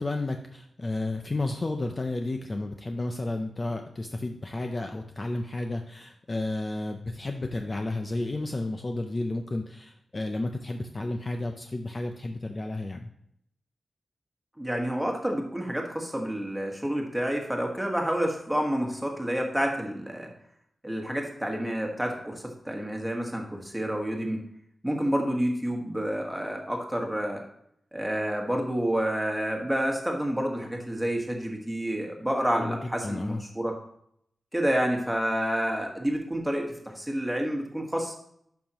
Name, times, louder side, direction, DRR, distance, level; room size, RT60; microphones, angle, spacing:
voice 1, 0.0-13.1 32.6-33.4, left 2 dB, 30° left, 4 dB, 0.5 m, -32 dB
voice 2, 14.6-20.3 20.8-24.4 24.8-27.4 27.9-33.7 34.5-38.2, equal, 5° right, 1 dB, 1.5 m, -29 dB
11.5 x 5.5 x 3.0 m, 0.71 s
wide cardioid pair, 135°, 0 cm